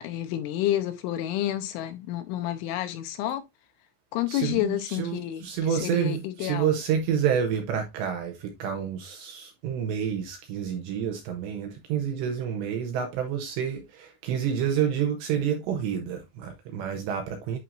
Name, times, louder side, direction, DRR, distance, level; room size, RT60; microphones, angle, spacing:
voice 1, 0.0-3.4 4.1-6.7, left 13 dB, 80° left, 3.0 m, -29 dB
voice 2, 4.3-17.6, right 8 dB, 80° right, 2.6 m, -29 dB
11.0 x 4.3 x 2.5 m
omnidirectional pair, 5.9 m